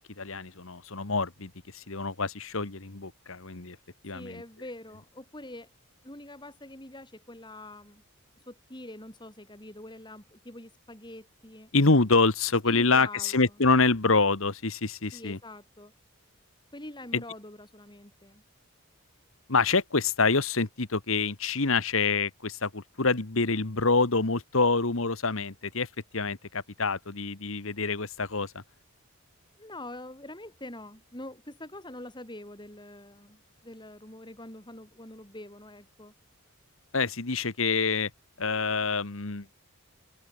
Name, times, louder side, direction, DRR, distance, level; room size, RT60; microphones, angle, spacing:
voice 1, 0.0-3.8 4.0-4.4 11.7-15.4 17.1-17.2 19.5-25.9 26.1-28.6 36.9-38.1 38.4-39.4, left 4 dB, 65° left, 1.6 m, -26 dB
voice 2, 4.1-5.7 6.0-8.0 8.5-11.7 12.7-13.6 15.1-15.9 16.7-18.4 29.6-36.1, left 1 dB, 20° left, 4.0 m, -45 dB
head